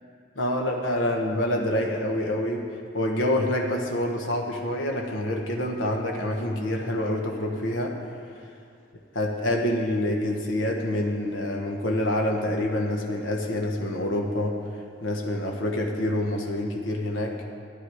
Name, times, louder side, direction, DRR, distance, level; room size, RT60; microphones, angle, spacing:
voice 1, 0.3-2.7 2.9-8.0 9.1-14.6 15.0-17.4, left 1 dB, 90° left, 1 dB, 1.2 m, -27 dB
13.5 x 10.5 x 4.9 m, 2.4 s
head